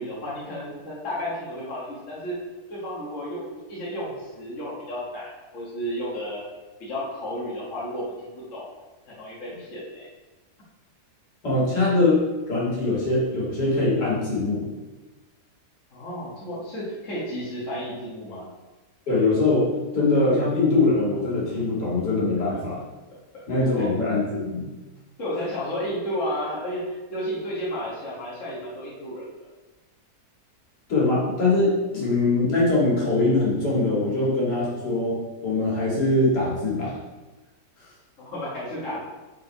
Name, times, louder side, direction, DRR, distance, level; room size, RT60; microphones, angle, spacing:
voice 1, 0.0-2.4 2.7-6.4 6.8-8.7 9.1-10.1 15.9-18.5 23.3-23.9 25.2-29.5 38.2-39.0, equal, 50° left, -7 dB, 1.9 m, -32 dB
voice 2, 11.4-14.7 19.1-19.7 19.9-22.8 23.5-24.7 30.9-37.0, left 2 dB, 75° left, -6 dB, 2.7 m, -22 dB
5.7 x 4.8 x 4.7 m, 1.2 s
omnidirectional pair, 1.8 m